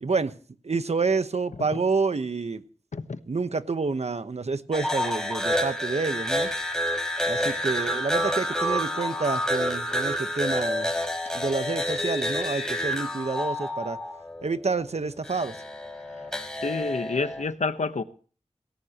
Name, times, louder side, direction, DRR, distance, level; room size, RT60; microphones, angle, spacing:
voice 1, 0.0-0.3 0.6-2.6 3.3-6.5 7.3-10.9 11.3-14.0 14.4-15.6, right 4 dB, 65° right, 1.1 m, -28 dB
sound 1, 4.7-14.6 15.2-17.4, equal, 5° left, 5.3 m, -29 dB
voice 2, 16.6-18.0, left 4 dB, 85° left, 1.1 m, -29 dB
18.0 x 18.0 x 3.0 m
wide cardioid pair, 50°, 12 cm